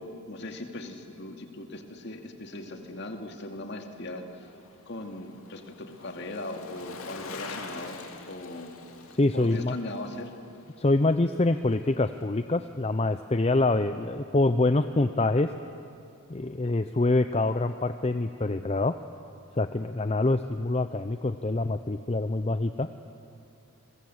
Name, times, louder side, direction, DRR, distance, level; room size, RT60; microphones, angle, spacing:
voice 1, 0.0-4.5 4.9-8.7 9.3-10.3, left 2 dB, 50° left, 4 dB, 2.4 m, -39 dB
Bicycle, 3.5-11.9 12.2-12.3, left 4 dB, 70° left, 2.4 m, -46 dB
voice 2, 9.1-9.7 10.8-15.5 16.3-19.0 19.6-22.9, left 2 dB, 30° left, 10 dB, 0.5 m, -25 dB
30.0 x 22.5 x 8.0 m, 2.7 s
head